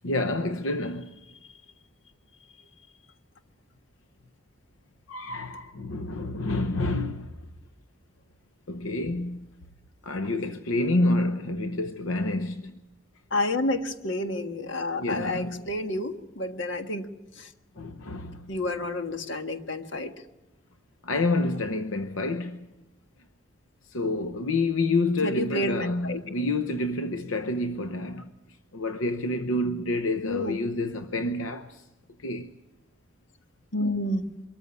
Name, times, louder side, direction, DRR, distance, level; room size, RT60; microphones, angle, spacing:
voice 1, 0.0-1.1 5.1-7.3 8.7-9.5 10.0-12.8 15.0-15.6 17.8-18.5 21.0-22.7 23.9-28.3 28.7-31.8 32.2-32.5, left 2 dB, 90° left, 0.9 m, -28 dB
voice 2, 13.3-17.1 17.4-17.5 18.5-20.1 25.2-26.2 30.2-30.6 33.7-34.3, left 1 dB, 65° left, 1.6 m, -29 dB
23.5 x 14.0 x 9.6 m
head